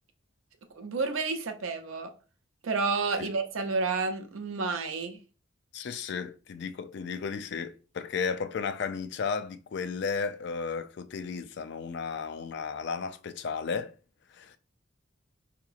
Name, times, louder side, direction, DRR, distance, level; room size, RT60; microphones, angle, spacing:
voice 1, 0.8-2.1 2.6-5.2, right 4 dB, 90° right, 0.6 m, -30 dB
voice 2, 5.7-13.9 14.4-14.6, left 5 dB, 60° left, 0.3 m, -34 dB
4.7 x 2.9 x 2.4 m
head